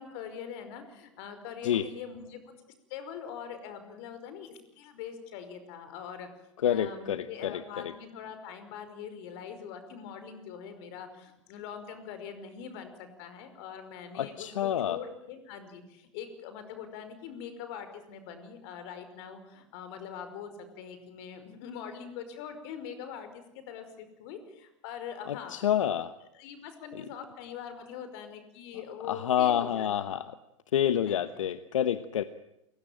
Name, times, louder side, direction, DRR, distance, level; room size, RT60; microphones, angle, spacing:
voice 1, 0.0-2.5 2.9-6.3 6.6-25.6 26.2-29.9 31.1-31.4, left 7 dB, 55° left, 9 dB, 5.4 m, -43 dB
voice 2, 6.6-7.6 14.2-15.0 25.3-26.1 29.1-30.2 30.7-32.2, left 10 dB, 85° left, 13 dB, 1.1 m, -28 dB
29.0 x 16.5 x 9.0 m, 0.84 s
hypercardioid pair, 115°, 16 cm